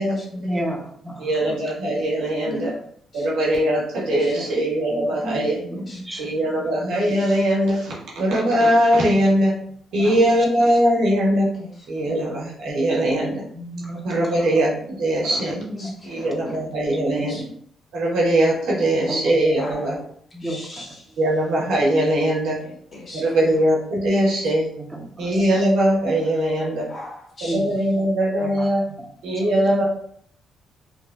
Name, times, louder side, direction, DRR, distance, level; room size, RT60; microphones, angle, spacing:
voice 1, 0.3-1.6 4.4-4.5 4.9-7.2 10.0-10.4 13.5-15.0 15.2-15.9 16.5-16.7 17.2-17.3 19.1-19.7 20.3-20.8 21.6-21.7 24.2-24.4 24.8-25.6 27.4-27.8 28.4-28.7 29.0-29.1 29.4-29.5, right 1 dB, 10° right, 1 dB, 0.6 m, -34 dB
voice 2, 1.2-2.7 3.1-5.6 6.2-9.5 9.9-11.5 11.9-13.4 14.0-14.7 15.0-15.6 16.0-17.4 17.9-19.9 21.2-22.6 23.1-24.7 25.2-26.9 27.5-28.8 29.2-29.8, right 1 dB, 80° right, -4 dB, 1.1 m, -21 dB
voice 3, 2.4-2.8 3.1-3.3 4.1-4.5 5.2-5.4 5.8-6.0 10.2-10.8 11.3-12.3 15.3-15.4 15.8-16.9 17.3-17.4 18.9-19.3 19.6-20.0 20.4-21.2 22.6-23.6 24.1-24.2 26.9-27.6, left 1 dB, 40° left, -3 dB, 1.2 m, -39 dB
3.1 x 2.3 x 2.2 m, 0.64 s
cardioid pair, 90°, 0 cm